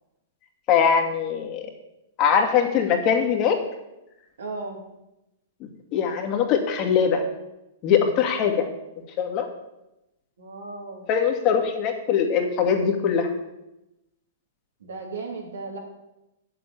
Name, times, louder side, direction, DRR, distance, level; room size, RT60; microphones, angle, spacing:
voice 1, 0.7-1.6 2.2-3.6 5.9-7.2 7.8-8.7 9.2-9.5 11.1-13.3, left 7 dB, 40° left, 4 dB, 2.1 m, -22 dB
voice 2, 4.4-4.8 10.4-11.1 14.8-15.8, right 3 dB, 80° right, 0 dB, 3.5 m, -35 dB
8.3 x 7.3 x 8.8 m, 0.92 s
hypercardioid pair, 130°, 0 cm